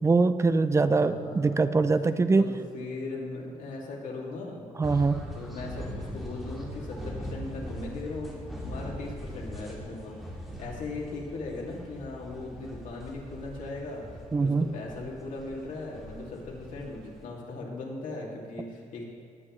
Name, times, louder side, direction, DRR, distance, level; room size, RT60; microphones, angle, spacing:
voice 1, 0.0-2.4 4.8-5.3 14.3-14.7, right 3 dB, 20° right, 11 dB, 0.5 m, -23 dB
voice 2, 0.9-1.6 2.3-4.7 5.3-8.4 8.6-10.2 10.6-14.0 14.4-19.1, left 2 dB, 75° left, -2 dB, 2.5 m, -38 dB
sound 1, 4.8-17.2, equal, ahead, 2.3 m, -41 dB
19.5 x 9.6 x 3.2 m, 2.4 s
cardioid pair, 135°, 13 cm